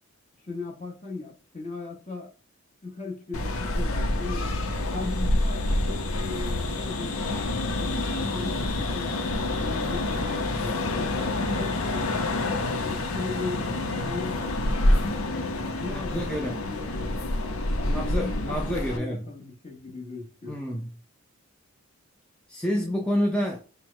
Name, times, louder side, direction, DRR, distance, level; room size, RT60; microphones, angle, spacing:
voice 1, 0.4-2.3 2.8-4.5 4.9-9.1 9.6-12.1 12.4-14.7 15.6-17.1 17.8-18.6 18.9-20.6, left 3 dB, 30° left, 1.1 m, -38 dB
sound 1, 3.3-19.0, left 2 dB, 85° left, 0.7 m, -27 dB
voice 2, 15.9-16.7 17.9-19.3 20.5-20.9 22.5-23.6, equal, 5° left, 0.5 m, -28 dB
4.5 x 2.2 x 4.5 m
head